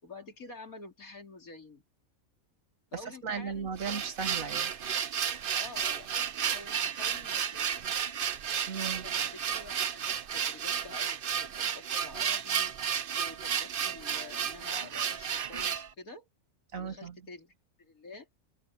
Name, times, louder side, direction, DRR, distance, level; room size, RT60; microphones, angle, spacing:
voice 1, 0.0-1.8 2.9-4.0 5.5-6.1 6.4-8.0 9.0-12.7 13.1-16.3 16.8-18.3, left 3 dB, 85° left, 3.8 m, -48 dB
voice 2, 2.9-4.7 8.7-9.0 16.7-17.2, right 6 dB, 70° right, 1.9 m, -36 dB
sound 1, 3.5-15.9, right 8 dB, 50° right, 0.7 m, -32 dB
open air
omnidirectional pair, 1.5 m